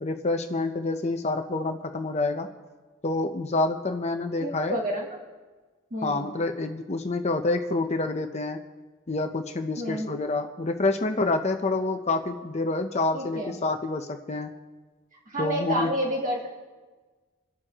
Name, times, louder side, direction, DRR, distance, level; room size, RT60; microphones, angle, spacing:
voice 1, 0.0-2.5 3.0-4.8 6.0-8.6 9.1-14.5 15.4-15.9, left 2 dB, 35° left, 6 dB, 0.7 m, -27 dB
voice 2, 4.4-5.2 5.9-6.3 9.8-10.1 13.1-13.6 15.3-16.5, right 1 dB, 40° right, -4 dB, 3.2 m, -29 dB
27.5 x 11.0 x 3.0 m, 1.4 s
head